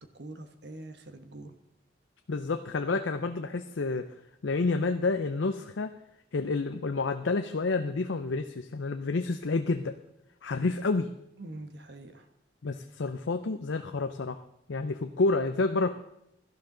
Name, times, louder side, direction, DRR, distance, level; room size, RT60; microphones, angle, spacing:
voice 1, 0.1-1.6 10.6-10.8 11.4-12.3, right 2 dB, 60° right, 7 dB, 1.2 m, -44 dB
voice 2, 2.3-4.1 4.4-5.9 6.3-10.0 10.4-11.1 12.6-14.4 14.7-15.9, left 3 dB, 75° left, 7 dB, 0.6 m, -29 dB
17.0 x 12.0 x 3.9 m, 0.82 s
head